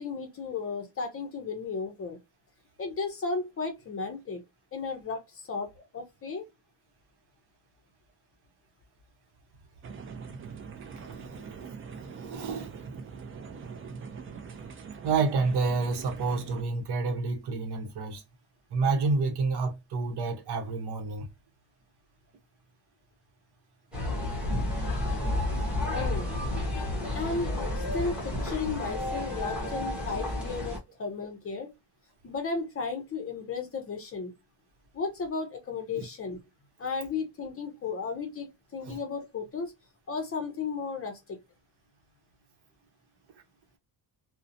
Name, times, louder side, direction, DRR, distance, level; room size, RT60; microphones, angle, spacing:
voice 1, 0.0-2.2 2.8-4.4 4.7-6.4 25.9-26.3 27.1-31.7 32.2-34.3 34.9-36.4 36.8-39.7 40.1-41.4, left 4 dB, 30° left, 0.6 m, -34 dB
sound 1, 9.8-16.6, right 5 dB, 30° right, 0.4 m, -42 dB
voice 2, 11.0-11.5 12.0-12.7 15.0-18.2 18.7-21.3 35.9-36.0 38.9-39.0, right 4 dB, 65° right, 0.9 m, -29 dB
sound 2, 23.9-30.8, left 1 dB, 5° right, 0.8 m, -31 dB
2.7 x 2.1 x 2.5 m
cardioid pair, 175°, 43 cm